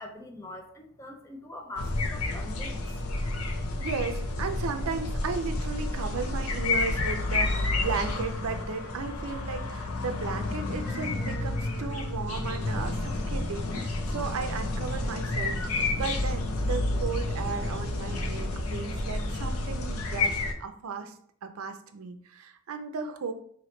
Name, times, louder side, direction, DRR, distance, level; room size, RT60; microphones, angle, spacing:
voice 1, 0.0-3.1, left 2 dB, 15° left, 2 dB, 0.4 m, -43 dB
sound 1, 1.8-20.5, left 2 dB, 75° left, 0.6 m, -30 dB
voice 2, 3.8-21.1 21.4-23.3, right 5 dB, 75° right, 7 dB, 0.5 m, -35 dB
Wind instrument woodwind instrument, 5.9-9.8 10.1-14.3, equal, 45° left, 0.8 m, -50 dB
sound 2, 9.7-18.5, equal, 45° right, 0.8 m, -48 dB
4.1 x 3.0 x 3.1 m, 0.63 s
head